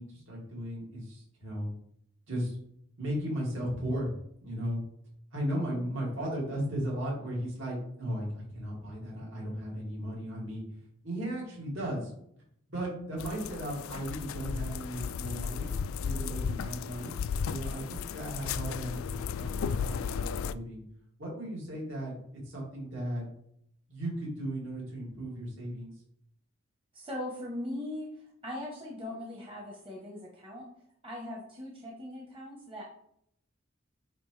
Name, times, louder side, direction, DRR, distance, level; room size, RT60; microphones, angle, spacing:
voice 1, 0.0-1.7 2.3-2.6 3.0-4.1 4.4-4.8 5.3-12.1 12.7-17.2 17.5-20.8 21.2-23.3 23.9-25.9, equal, 65° right, -4 dB, 2.6 m, -36 dB
sound 1, 13.2-20.5, left 6 dB, 80° left, 0.3 m, -34 dB
voice 2, 26.9-30.6 31.0-32.8, left 1 dB, 25° right, -2 dB, 1.2 m, -40 dB
8.8 x 3.6 x 3.3 m, 0.71 s
head